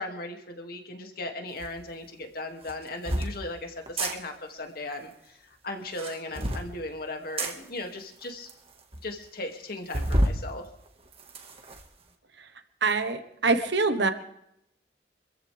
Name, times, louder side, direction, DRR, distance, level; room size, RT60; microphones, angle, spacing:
voice 1, 0.0-8.5 9.0-10.6, left 2 dB, 60° left, 4 dB, 2.4 m, -37 dB
sound 1, 1.6-1.7 2.6-3.3 3.9-4.1 5.8-6.7 7.4-7.5 8.2-8.3 8.5-8.6 8.9-9.0 9.9-10.4 10.9-11.8, right 1 dB, 35° right, 1.8 m, -28 dB
voice 2, 12.8-14.1, right 3 dB, 75° right, 8 dB, 1.3 m, -24 dB
26.5 x 14.5 x 3.5 m, 0.77 s
head